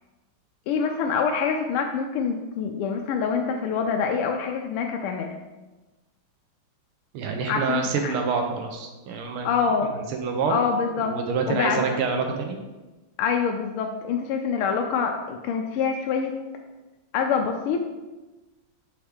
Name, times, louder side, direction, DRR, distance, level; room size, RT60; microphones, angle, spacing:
voice 1, 0.7-5.4 7.5-8.1 9.4-9.9 10.5-11.2 11.5-11.8 13.2-16.3 17.1-17.8, left 6 dB, 85° left, 3 dB, 1.5 m, -25 dB
voice 2, 7.1-9.5 10.1-10.6 11.0-12.6, right 5 dB, 90° right, 4 dB, 1.7 m, -27 dB
7.0 x 4.5 x 3.6 m, 1.1 s
omnidirectional pair, 2.4 m